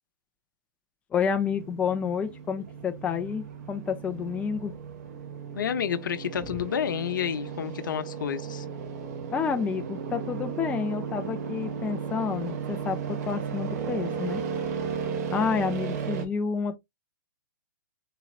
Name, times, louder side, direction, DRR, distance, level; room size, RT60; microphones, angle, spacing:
voice 1, 1.1-4.7 9.3-13.0 13.2-14.4 15.3-16.8, left 6 dB, 10° left, 0.4 m, -29 dB
sound 1, 1.4-16.3, right 6 dB, 50° right, 1.0 m, -35 dB
voice 2, 5.5-8.7, left 8 dB, 70° left, 0.7 m, -30 dB
4.1 x 3.0 x 2.4 m
hypercardioid pair, 135°, 11 cm